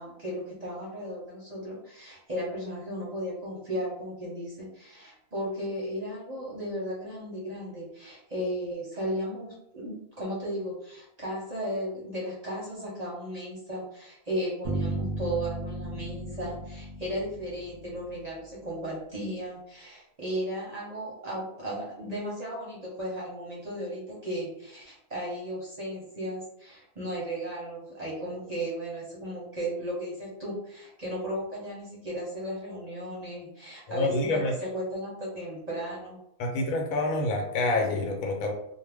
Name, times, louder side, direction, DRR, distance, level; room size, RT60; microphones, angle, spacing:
voice 1, 0.0-36.2, equal, 40° right, -5 dB, 0.7 m, -35 dB
sound 1, 14.6-18.4, right 2 dB, 75° right, 0.4 m, -35 dB
voice 2, 33.9-34.5 36.4-38.5, left 2 dB, 85° left, 2 dB, 1.1 m, -27 dB
2.4 x 2.0 x 3.4 m, 0.76 s
omnidirectional pair, 1.4 m